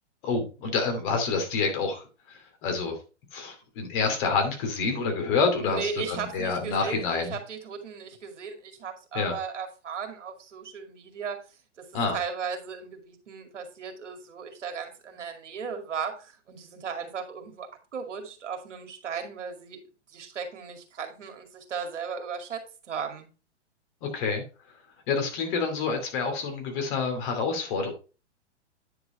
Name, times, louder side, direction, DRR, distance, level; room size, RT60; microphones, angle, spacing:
voice 1, 0.2-3.0 3.3-7.3 9.1-9.3 11.9-12.1 24.0-24.4 25.1-27.9, left 4 dB, 45° left, 4 dB, 2.8 m, -28 dB
voice 2, 5.6-11.4 11.8-11.9 12.1-19.8 20.1-23.3, right 6 dB, 80° right, 4 dB, 2.3 m, -36 dB
9.7 x 4.8 x 4.2 m, 0.33 s
hypercardioid pair, 130°, 36 cm